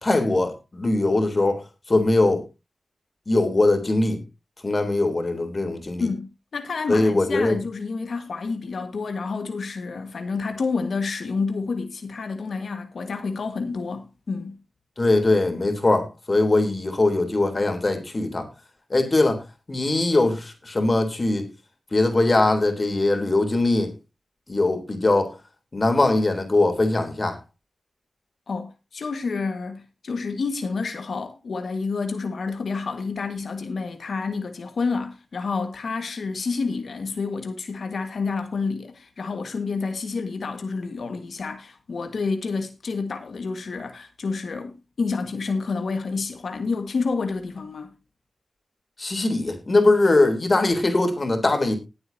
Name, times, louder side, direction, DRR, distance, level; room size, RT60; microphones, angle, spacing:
voice 1, 0.0-2.4 3.3-4.2 4.6-6.1 6.9-7.6 15.0-18.5 18.9-19.4 19.7-21.5 21.9-23.9 24.5-25.3 25.7-27.4 49.0-51.8, left 2 dB, 40° left, 3.4 m, -21 dB
voice 2, 6.0-14.6 28.5-47.9, left 4 dB, 75° left, 1.6 m, -29 dB
20.0 x 7.9 x 2.8 m
wide cardioid pair, 75°, 0 cm